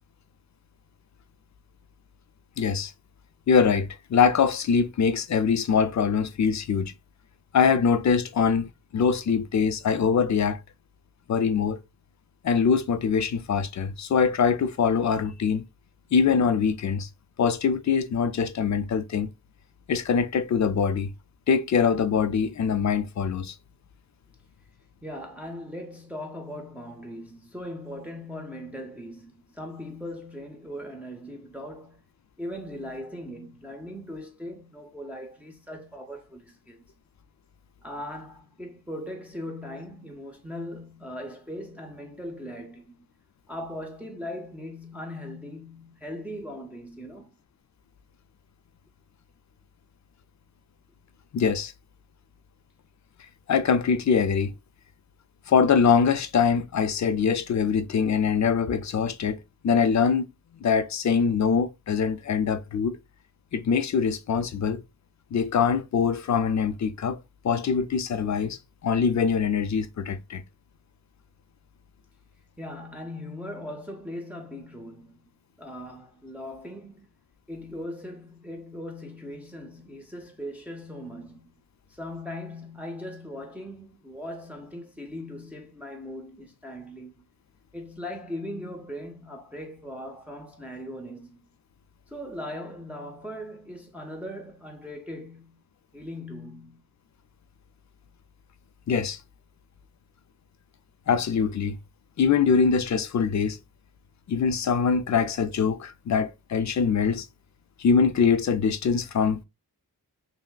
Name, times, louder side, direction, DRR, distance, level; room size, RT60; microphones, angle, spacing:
voice 1, 2.6-2.9 3.5-6.9 7.5-10.6 11.3-11.8 12.4-15.6 16.1-17.1 17.4-19.3 19.9-21.1 21.5-23.5 51.3-51.7 53.5-54.5 55.5-60.3 60.6-63.0 63.5-64.8 65.3-67.2 67.4-70.4 98.9-99.2 101.1-101.8 102.2-103.6 104.3-107.3 107.8-109.4, left 6 dB, 50° left, 0.5 m, -23 dB
voice 2, 25.0-32.0 32.4-36.8 37.8-42.9 43.5-47.3 72.6-75.3 75.6-77.1 77.5-81.5 81.9-87.2 87.7-91.4 92.1-95.6 95.9-96.8, left 1 dB, 5° right, 0.6 m, -39 dB
5.6 x 2.1 x 2.2 m
wide cardioid pair, 165°, 38 cm